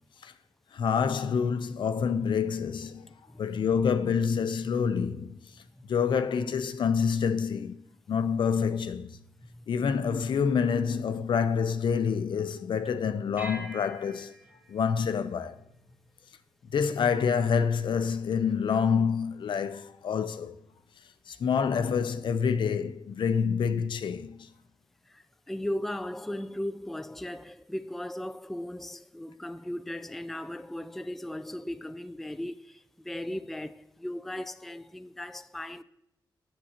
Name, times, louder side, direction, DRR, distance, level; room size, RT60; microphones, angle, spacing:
voice 1, 0.7-3.1 3.4-5.4 5.9-7.8 8.1-9.2 9.7-14.3 14.7-15.6 16.7-20.6 21.3-24.5, left 6 dB, 75° left, 0.6 m, -27 dB
sound 1, 13.4-16.1, equal, 25° right, 0.9 m, -46 dB
voice 2, 25.1-35.8, left 1 dB, 5° left, 0.3 m, -37 dB
10.0 x 7.8 x 2.8 m
wide cardioid pair, 120°, 8 cm